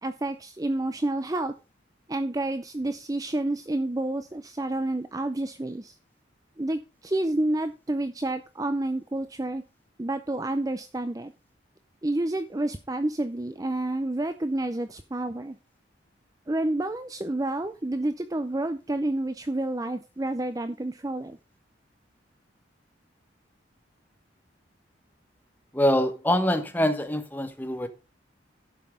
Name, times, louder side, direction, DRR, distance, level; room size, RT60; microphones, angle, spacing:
voice 1, 0.0-1.5 2.1-6.0 6.6-9.6 10.0-11.3 12.0-15.6 16.5-21.4, right 1 dB, 20° right, 0.5 m, -29 dB
voice 2, 25.7-27.9, left 1 dB, 10° left, 1.2 m, -24 dB
11.0 x 5.7 x 5.1 m
head